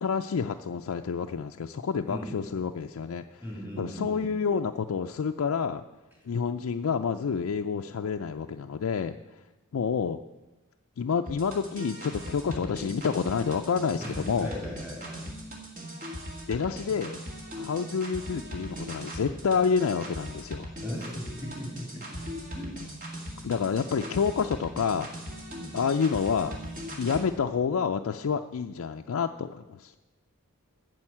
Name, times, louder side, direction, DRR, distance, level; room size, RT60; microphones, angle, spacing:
voice 1, 0.0-5.8 6.2-9.4 9.7-10.2 11.0-14.5 16.5-17.2 17.5-20.7 23.4-25.2 25.7-26.6 27.0-29.9, left 6 dB, 75° left, 4 dB, 0.4 m, -29 dB
voice 2, 3.4-4.3 14.0-15.2 20.8-22.3 22.5-22.8 23.3-23.5 25.5-25.8, equal, 10° right, -3 dB, 3.1 m, -38 dB
sound 1, 11.3-27.2, equal, 40° right, 2.0 m, -40 dB
9.0 x 6.3 x 8.5 m, 1.1 s
head